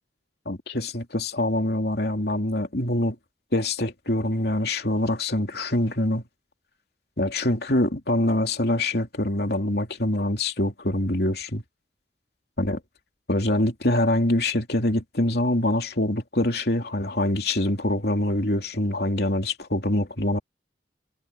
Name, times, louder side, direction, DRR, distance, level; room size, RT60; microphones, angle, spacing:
voice 1, 0.4-3.2 3.5-6.2 7.2-11.6 12.6-12.8 13.3-20.4, left 1 dB, 60° left, 3.1 m, -24 dB
head